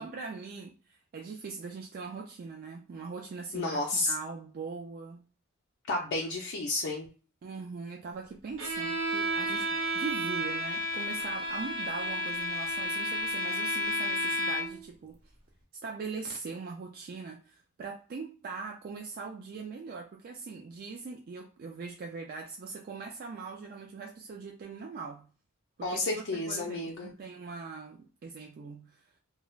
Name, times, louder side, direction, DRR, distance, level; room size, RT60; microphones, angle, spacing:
voice 1, 0.0-3.8 4.1-5.2 7.4-15.2 15.8-25.3 25.8-29.0, right 4 dB, 45° right, 0.3 m, -41 dB
voice 2, 3.5-4.1 5.9-7.1 25.8-27.1, left 2 dB, 55° left, 0.4 m, -31 dB
Bowed string instrument, 8.6-14.9, equal, 65° right, 0.8 m, -32 dB
2.3 x 2.1 x 3.1 m
head